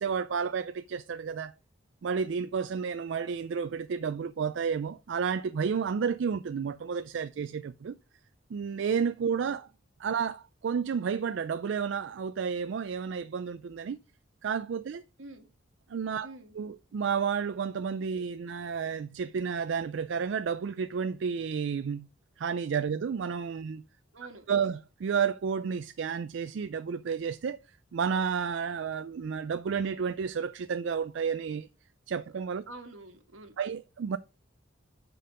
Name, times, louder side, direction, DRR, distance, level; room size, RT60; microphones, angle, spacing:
voice 1, 0.0-1.5 2.0-8.0 8.5-9.7 10.0-14.0 14.4-15.0 15.9-16.3 16.6-22.1 22.4-23.8 24.5-27.6 27.9-31.7 32.1-32.6 33.6-34.2, right 6 dB, 65° right, 0.4 m, -31 dB
voice 2, 15.2-15.5 16.2-16.5 24.1-24.5 32.7-33.6, right 2 dB, 85° right, 1.5 m, -47 dB
6.7 x 5.2 x 5.0 m
head